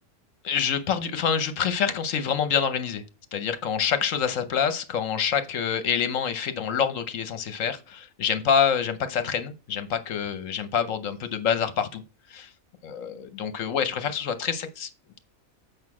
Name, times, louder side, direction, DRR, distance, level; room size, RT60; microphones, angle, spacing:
voice 1, 0.4-3.0 3.3-12.0 12.3-12.5 12.8-14.9, left 7 dB, 70° left, 1.2 m, -26 dB
7.9 x 5.2 x 4.8 m
omnidirectional pair, 1.4 m